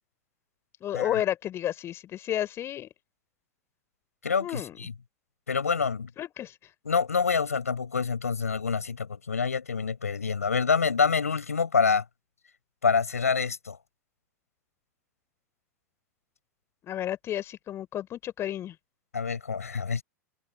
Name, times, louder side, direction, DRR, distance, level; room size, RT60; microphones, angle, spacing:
voice 1, 0.8-2.9 4.4-4.8 6.2-6.6 16.8-18.8, left 12 dB, 35° left, 4.3 m, -31 dB
voice 2, 4.2-4.9 5.5-6.1 6.9-12.0 12.8-13.8 19.1-20.0, left 5 dB, 75° left, 5.4 m, -26 dB
figure-of-eight pair, 85°, 8 cm